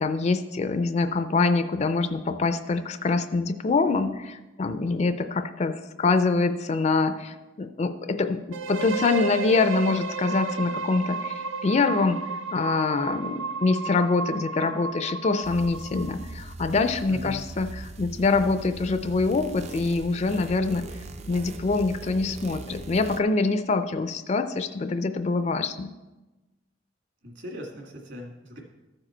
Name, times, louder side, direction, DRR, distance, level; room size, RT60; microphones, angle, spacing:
voice 1, 0.0-8.4 8.7-12.2 12.5-20.9 21.3-25.9, left 3 dB, 35° left, 9 dB, 0.4 m, -25 dB
sound 1, 8.5-16.3, right 4 dB, 80° right, 0.6 m, -33 dB
sound 2, 15.4-23.2, right 2 dB, 35° right, 0.4 m, -40 dB
voice 2, 17.1-17.4 27.2-28.6, equal, 60° right, 0 dB, 2.1 m, -39 dB
14.0 x 4.9 x 4.4 m, 1.1 s
head